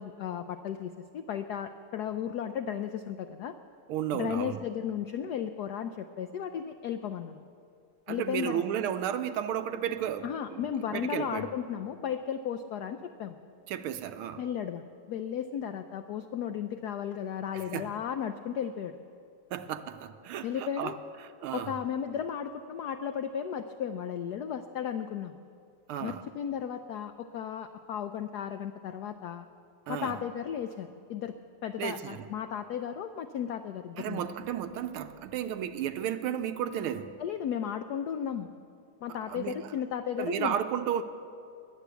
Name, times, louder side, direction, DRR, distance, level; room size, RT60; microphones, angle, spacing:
voice 1, 0.0-3.5 4.1-7.4 8.1-8.6 10.2-13.4 14.4-19.0 20.4-21.0 21.5-25.4 26.0-29.5 29.9-31.3 31.6-34.3 37.2-38.5 39.0-40.6, left 8 dB, 90° left, 0.8 m, -35 dB
voice 2, 3.9-4.6 8.1-11.5 13.7-14.4 17.5-17.9 19.5-21.0 21.2-21.8 25.9-26.2 29.9-30.2 31.8-32.3 34.0-37.2 39.3-39.7 40.2-41.0, right 9 dB, 90° right, 1.5 m, -33 dB
21.0 x 8.4 x 8.1 m
omnidirectional pair, 2.4 m